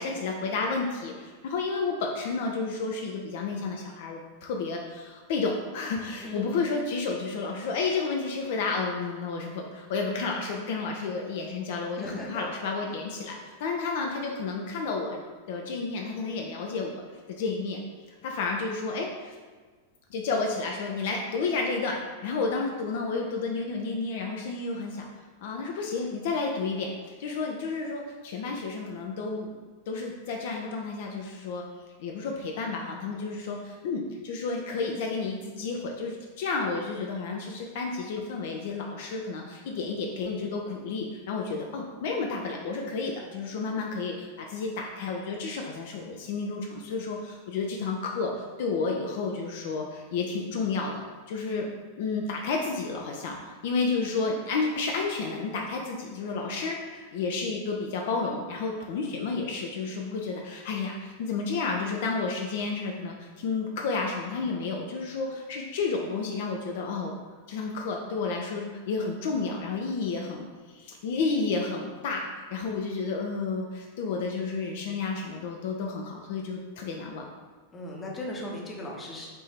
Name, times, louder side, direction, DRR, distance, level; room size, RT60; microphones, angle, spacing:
voice 1, 0.0-17.0 17.3-17.8 18.2-19.4 20.1-25.1 25.4-29.6 29.9-31.6 32.0-51.0 51.3-51.7 52.0-67.1 67.5-77.3, left 4 dB, 55° left, 1 dB, 0.4 m, -31 dB
voice 2, 12.0-12.4 12.9-13.0 77.7-79.3, left 1 dB, 20° left, -1 dB, 0.8 m, -37 dB
4.4 x 2.6 x 3.3 m, 1.4 s
figure-of-eight pair, 90°, 0 cm